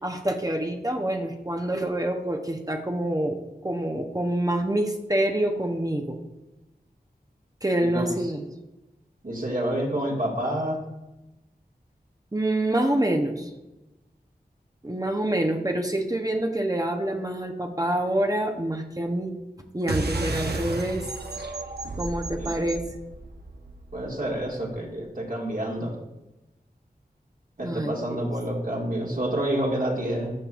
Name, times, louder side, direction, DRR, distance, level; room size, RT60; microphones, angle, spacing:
voice 1, 0.0-3.4 3.6-6.2 7.6-8.4 12.3-13.5 14.8-19.4 19.7-21.1 22.0-22.8 27.6-28.3, right 1 dB, 20° right, 3 dB, 0.8 m, -26 dB
voice 2, 7.8-8.1 9.2-10.8 22.4-22.7 23.9-25.9 27.6-30.3, right 1 dB, 55° right, -2 dB, 2.0 m, -28 dB
sound 1, 19.9-24.8, right 2 dB, 75° right, 0.8 m, -33 dB
13.0 x 5.3 x 2.5 m, 0.98 s
wide cardioid pair, 40°, 17 cm